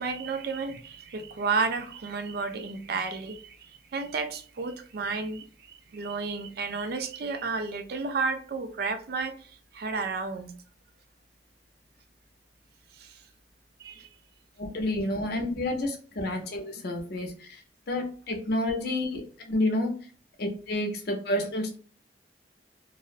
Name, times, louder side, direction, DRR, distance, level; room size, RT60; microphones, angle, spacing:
voice 1, 0.0-10.5 13.0-13.2 13.8-14.1, right 4 dB, 60° right, 0.4 m, -32 dB
voice 2, 14.6-17.6 17.9-19.9 20.4-21.8, left 1 dB, 60° left, 0.6 m, -29 dB
2.5 x 2.0 x 2.4 m
head